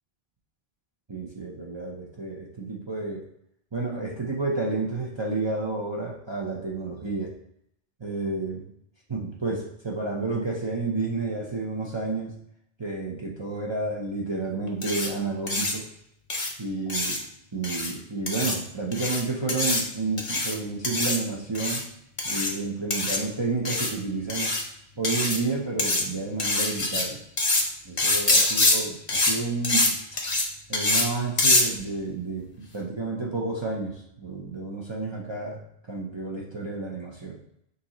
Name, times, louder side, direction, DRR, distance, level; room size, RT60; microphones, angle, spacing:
voice 1, 1.1-3.2 3.7-7.3 8.0-8.7 9.1-12.3 12.8-15.8 16.6-17.2 17.5-21.9 22.2-24.5 25.0-27.2 27.8-30.2 30.7-35.6 35.9-37.4, right 3 dB, 30° right, -4 dB, 0.6 m, -30 dB
sound 1, 14.8-15.1 15.5-15.7 16.3-16.5 16.9-17.2 17.6-17.9 18.3-18.6 18.9-19.2 19.5-19.8 20.2-20.5 20.8-21.2 21.5-21.8 22.2-22.5 22.9-23.2 23.7-23.9 24.3-24.6 25.0-25.4 25.8-26.0 26.4-27.0 27.4-27.6 28.0-28.8 29.1-29.3 29.6-29.9 30.2-30.4 30.7-31.1 31.4-31.6, left 2 dB, 35° left, 0.8 m, -24 dB
6.4 x 2.7 x 2.9 m, 0.76 s
omnidirectional pair, 1.1 m